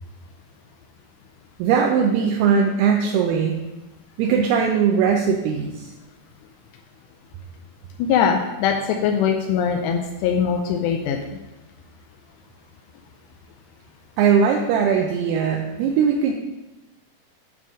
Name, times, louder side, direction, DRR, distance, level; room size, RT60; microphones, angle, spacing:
voice 1, 1.6-3.6 4.2-5.9 14.2-16.3, right 6 dB, 80° right, 1 dB, 2.5 m, -20 dB
voice 2, 8.0-11.2, left 7 dB, 80° left, 3 dB, 2.7 m, -21 dB
9.5 x 3.7 x 6.2 m, 1.0 s
omnidirectional pair, 5.2 m